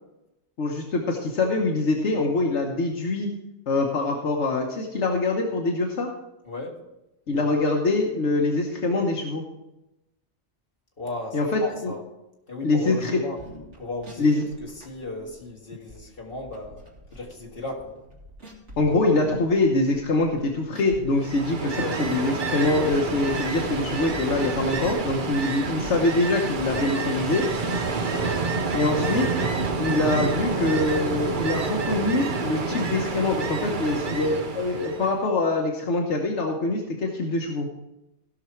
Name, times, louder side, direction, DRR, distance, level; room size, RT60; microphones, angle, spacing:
voice 1, 0.6-3.3 3.7-6.1 7.3-9.4 11.3-11.9 12.6-13.2 14.2-14.4 18.8-27.5 28.7-29.3 29.8-37.7, left 2 dB, 80° left, 1 dB, 1.3 m, -24 dB
voice 2, 6.4-6.8 7.3-7.6 11.0-12.0 12.5-13.4 13.8-16.8 17.1-18.0 28.2-28.5, left 2 dB, 55° left, -1 dB, 2.2 m, -36 dB
sound 1, 13.4-27.9, equal, 85° right, 2.4 m, -46 dB
Ocean, 21.1-35.2, right 4 dB, 50° right, 0.9 m, -28 dB
16.5 x 6.0 x 4.4 m, 0.94 s
omnidirectional pair, 1.2 m